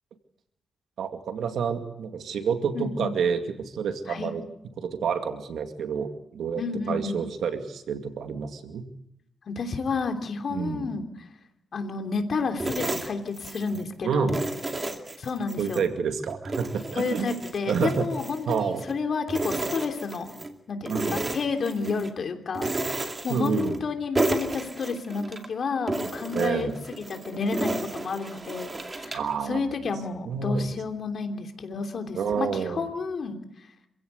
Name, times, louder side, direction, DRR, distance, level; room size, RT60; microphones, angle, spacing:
voice 1, 1.0-4.4 4.8-8.9 10.5-10.9 14.0-14.3 15.6-17.3 17.7-18.1 18.5-18.8 20.9-21.3 23.3-23.8 26.3-26.8 29.1-29.7 30.3-30.7 32.1-32.8, right 6 dB, 85° right, 7 dB, 2.2 m, -28 dB
voice 2, 2.7-3.1 4.1-4.3 6.6-7.2 9.5-11.3 11.7-14.4 15.2-15.8 16.9-20.4 20.7-33.7, left 4 dB, 55° left, 6 dB, 3.1 m, -31 dB
sound 1, 12.6-13.9 14.3-15.9 16.3-19.0 19.3-20.5 20.9-22.1 22.5-23.9 24.1-25.5 25.9-29.3, right 2 dB, 25° right, 2.4 m, -32 dB
27.0 x 16.5 x 8.2 m, 0.78 s
wide cardioid pair, 125°, 0 cm